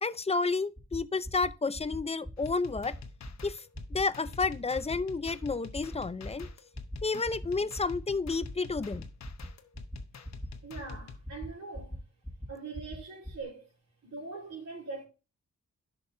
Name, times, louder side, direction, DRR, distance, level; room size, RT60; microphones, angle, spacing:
voice 1, 0.0-2.9 3.4-3.6 3.9-6.5 7.0-9.0, left 4 dB, 20° left, 0.4 m, -31 dB
sound 1, 0.8-1.0 1.2-1.5 1.7-2.0 2.2-2.5 2.7-3.0 3.2-3.5 3.7-4.0 4.2-4.5 4.7-5.0 5.2-5.5 5.7-6.0 6.2-6.5 6.7-7.0 7.2-7.5 7.7-8.0 8.2-8.5 8.7-9.0 9.2-9.5 9.7-10.0 10.2-10.5 10.7-11.0 11.2-11.5 11.7-12.0 12.2-12.5 12.7-13.0 13.2-13.4, equal, ahead, 1.7 m, -40 dB
sound 2, 2.4-11.2, left 5 dB, 65° left, 1.0 m, -48 dB
voice 2, 10.6-12.0 12.5-13.7 14.0-15.0, right 4 dB, 60° right, 4.1 m, -42 dB
11.0 x 5.3 x 2.6 m
cardioid pair, 65°, 30 cm